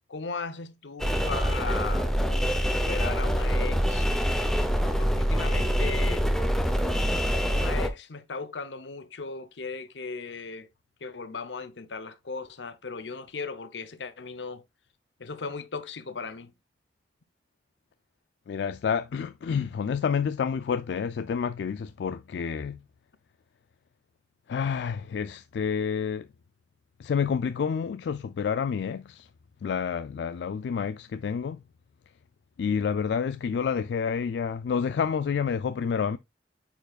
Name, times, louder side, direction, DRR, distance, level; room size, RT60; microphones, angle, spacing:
voice 1, 0.1-2.1 2.6-4.1 5.0-6.3 7.5-10.7 11.0-14.6 15.2-16.5, left 4 dB, 90° left, 0.8 m, -37 dB
sound 1, 1.0-7.9, equal, 5° left, 0.7 m, -25 dB
voice 2, 18.5-22.8 24.5-26.3 27.0-29.3 29.6-31.6 32.6-36.2, left 6 dB, 70° left, 0.3 m, -29 dB
9.0 x 4.6 x 2.3 m
head